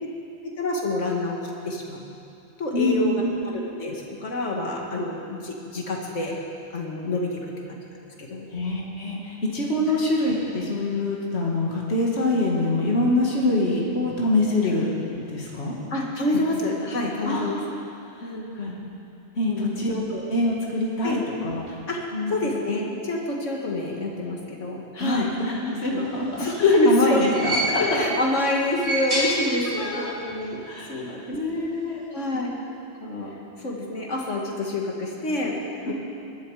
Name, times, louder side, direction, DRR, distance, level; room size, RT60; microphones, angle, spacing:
voice 1, 0.4-1.4 1.7-2.0 2.6-3.1 3.4-6.3 6.7-7.8 8.2-8.5 14.6-14.7 15.9-17.6 18.2-18.5 19.5-19.8 21.0-21.2 21.9-22.0 22.3-25.3 25.7-26.1 26.4-27.2 27.8-30.6 30.9-31.3 32.1-32.5 33.0-33.3 33.6-35.9, left 2 dB, 85° left, -1 dB, 2.3 m, -27 dB
voice 2, 2.7-3.3 8.5-15.8 16.3-16.4 17.3-17.6 18.6-18.8 19.4-21.8 22.1-22.3 25.0-28.0 29.7-30.1 30.6-32.1 32.3-32.4 35.9-36.0, left 2 dB, 60° left, -3 dB, 2.2 m, -25 dB
sound 1, 26.2-28.1 28.6-30.0 30.3-30.4 31.5-31.6, right 1 dB, 70° right, 4.9 m, -28 dB
21.0 x 11.5 x 4.9 m, 2.7 s
omnidirectional pair, 1.2 m